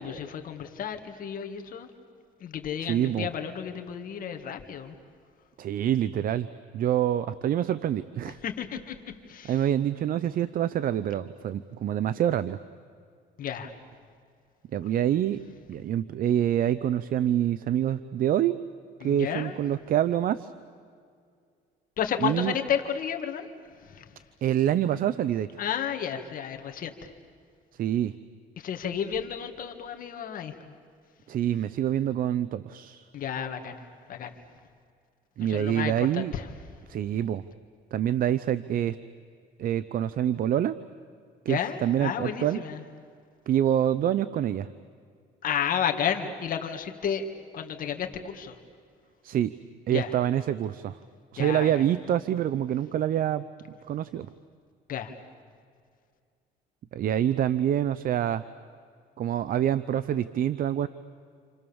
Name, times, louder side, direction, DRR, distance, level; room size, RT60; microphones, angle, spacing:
voice 1, 0.0-1.9 2.4-5.0 8.4-9.0 9.3-9.7 13.4-13.7 19.0-19.6 22.0-23.5 23.8-24.2 25.6-27.1 28.6-30.6 33.1-33.8 34.1-34.3 35.4-36.5 41.5-42.8 45.4-48.6 49.9-50.1 51.4-51.8 54.9-55.1, left 8 dB, 55° left, 5 dB, 2.1 m, -32 dB
voice 2, 2.8-3.3 5.6-6.5 6.7-8.4 9.5-12.6 14.7-15.4 15.7-18.6 19.0-20.5 22.2-22.5 24.4-25.5 27.8-28.1 31.3-33.0 35.4-36.3 36.9-37.4 37.9-39.0 39.6-40.8 41.5-42.6 43.5-44.7 49.2-49.5 49.9-51.0 51.3-53.4 53.9-54.3 56.9-58.4 59.2-60.9, right 10 dB, 55° right, 14 dB, 0.7 m, -26 dB
29.5 x 28.0 x 7.2 m, 2.2 s
cardioid pair, 110°, 17 cm